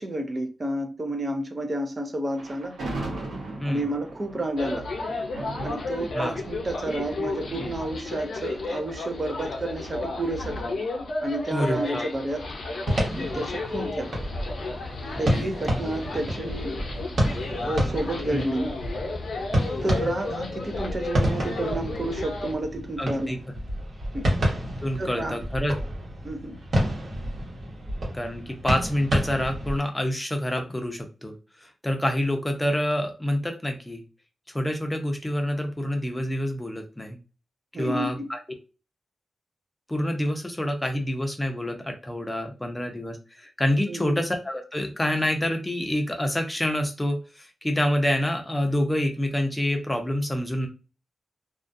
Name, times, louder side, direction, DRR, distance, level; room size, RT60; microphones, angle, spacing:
voice 1, 0.0-2.7 3.7-4.9 5.6-10.8 11.2-12.4 13.2-14.1 15.2-16.7 17.6-18.7 19.8-23.3 24.1-24.3 25.0-25.4 26.2-26.6 37.7-38.3 43.9-44.2, right 1 dB, 35° right, 0.5 m, -30 dB
Thunder, 2.3-9.5, right 2 dB, 85° right, 0.9 m, -39 dB
sound 1, 4.6-22.5, left 2 dB, 75° left, 0.6 m, -33 dB
voice 2, 11.5-12.1 15.1-15.5 18.3-18.5 23.0-23.4 24.8-25.7 28.1-31.3 31.6-34.0 34.5-37.2 37.8-38.4 39.9-50.7, left 1 dB, 15° left, 0.5 m, -27 dB
sound 2, 12.9-29.8, equal, 60° right, 1.0 m, -29 dB
2.3 x 2.2 x 2.5 m
cardioid pair, 85°, 0 cm